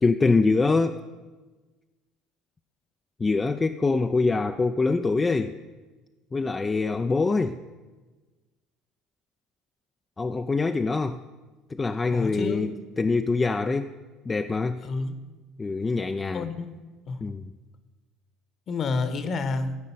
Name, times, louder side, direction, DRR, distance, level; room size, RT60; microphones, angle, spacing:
voice 1, 0.0-1.0 3.2-5.6 6.3-7.6 10.2-11.2 11.7-13.9 14.3-14.8 15.6-16.5 17.2-17.4, left 3 dB, 20° left, 0.5 m, -24 dB
voice 2, 12.1-12.7 14.8-15.1 16.3-16.8 17.1-17.2 18.7-19.8, left 4 dB, 45° left, 1.2 m, -29 dB
14.0 x 5.2 x 8.5 m
supercardioid pair, 85°, 0 cm